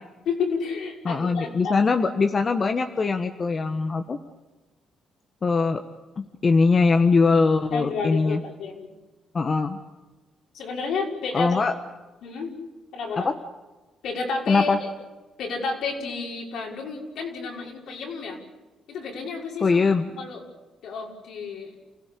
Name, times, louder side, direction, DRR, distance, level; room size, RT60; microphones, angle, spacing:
voice 1, 0.3-1.9 7.7-8.9 10.5-11.6 12.2-12.5 12.9-13.3 14.0-14.9 15.4-18.4 18.9-20.4 20.8-21.7, left 4 dB, 75° left, -1 dB, 5.8 m, -31 dB
voice 2, 1.0-4.2 5.4-5.8 6.2-8.4 9.3-9.8 11.3-11.7 13.1-13.3 14.5-14.8 19.6-20.1, left 4 dB, 40° left, 6 dB, 1.4 m, -21 dB
29.0 x 16.5 x 8.6 m, 1.2 s
cardioid pair, 90°, 0 cm